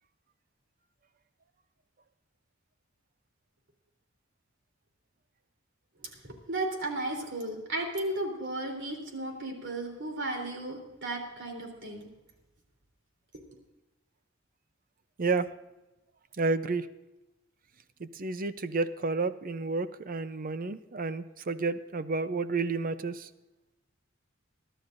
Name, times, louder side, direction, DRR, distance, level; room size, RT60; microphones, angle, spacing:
voice 1, 6.2-12.1, right 2 dB, 65° right, 1 dB, 3.5 m, -34 dB
voice 2, 16.4-16.9 18.0-23.3, right 3 dB, 45° right, 12 dB, 0.6 m, -31 dB
22.5 x 12.5 x 2.6 m, 1.0 s
head